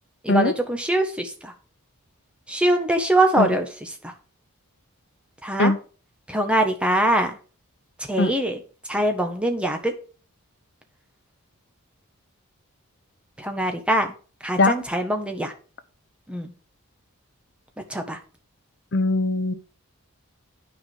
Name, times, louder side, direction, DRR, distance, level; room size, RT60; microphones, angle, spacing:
voice 1, 0.2-1.5 2.5-4.1 5.4-5.7 6.3-7.3 8.1-8.6 8.9-9.9 13.4-14.1 14.4-15.5 16.3-16.5 17.9-18.2, right 1 dB, 5° right, 5 dB, 1.2 m, -23 dB
voice 2, 18.9-19.5, left 2 dB, 50° left, 11 dB, 0.8 m, -20 dB
9.5 x 4.9 x 6.3 m, 0.38 s
head